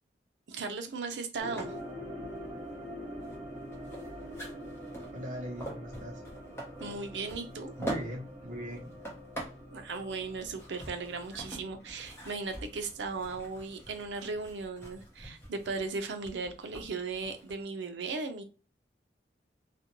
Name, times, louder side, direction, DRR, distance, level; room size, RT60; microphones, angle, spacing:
voice 1, 0.5-1.7 6.8-7.7 9.7-18.4, right 4 dB, 80° right, 6 dB, 0.5 m, -37 dB
sound 1, 1.4-13.6 13.9-14.0, equal, 30° right, 1.4 m, -45 dB
sound 2, 1.5-17.6, right 1 dB, 15° left, 0.7 m, -45 dB
voice 2, 5.1-6.2 7.8-8.9, equal, 45° right, -1 dB, 0.8 m, -39 dB
2.5 x 2.2 x 2.9 m, 0.34 s
head